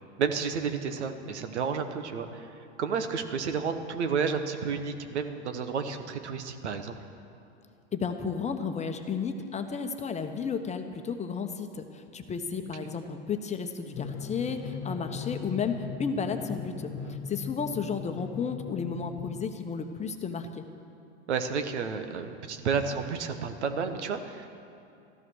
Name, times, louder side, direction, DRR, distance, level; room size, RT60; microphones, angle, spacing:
voice 1, 0.2-6.9 17.0-17.1 21.3-24.5, right 6 dB, 85° right, 8 dB, 1.3 m, -31 dB
voice 2, 7.9-16.9 17.3-20.6, left 6 dB, 20° left, 6 dB, 1.0 m, -33 dB
Drum, 13.9-19.5, left 6 dB, 50° left, 1.3 m, -38 dB
13.5 x 12.5 x 6.3 m, 2.6 s
hypercardioid pair, 105°, 33 cm